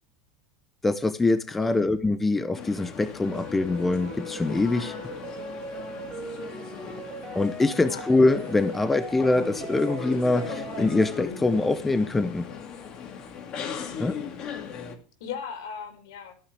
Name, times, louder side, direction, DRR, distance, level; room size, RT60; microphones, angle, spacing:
voice 1, 0.8-4.9 7.3-12.5 14.0-14.2, left 2 dB, 5° left, 11 dB, 0.8 m, -24 dB
sound 1, 2.5-15.0, left 7 dB, 30° left, 2.3 m, -38 dB
sound 2, 3.2-11.2, equal, 15° right, 6.2 m, -39 dB
voice 2, 13.9-14.3 15.2-16.3, left 7 dB, 75° left, 7 dB, 5.2 m, -38 dB
15.5 x 14.5 x 3.4 m, 0.37 s
supercardioid pair, 175°, 2 cm